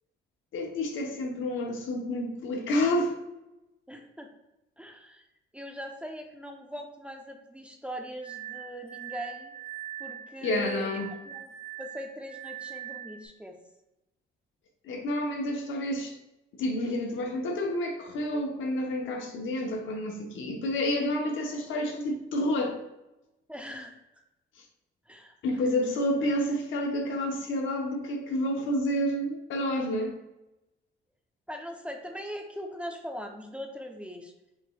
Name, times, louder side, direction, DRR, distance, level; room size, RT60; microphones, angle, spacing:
voice 1, 0.5-3.2 10.4-11.1 14.8-16.1 16.6-22.8 25.4-30.1, left 1 dB, 80° left, 2 dB, 0.9 m, -29 dB
voice 2, 3.9-4.3 4.8-5.2 5.5-9.5 10.0-10.9 11.2-11.5 11.8-13.6 23.5-24.0 25.1-25.3 31.5-34.3, equal, 5° right, 3 dB, 0.6 m, -40 dB
Glass, 8.2-13.3, right 11 dB, 25° left, 1.1 m, -42 dB
6.1 x 3.1 x 2.3 m, 0.92 s
cardioid pair, 90°, 20 cm